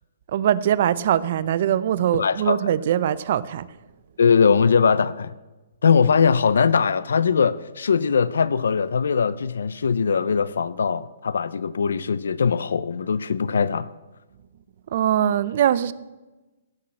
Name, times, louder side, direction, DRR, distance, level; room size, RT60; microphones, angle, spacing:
voice 1, 0.3-3.6 14.9-15.9, right 10 dB, 50° right, 0.6 m, -22 dB
voice 2, 2.1-2.7 4.2-5.3 5.8-13.9, left 6 dB, 85° left, 0.5 m, -21 dB
16.0 x 6.2 x 7.6 m
hypercardioid pair, 160°, 0 cm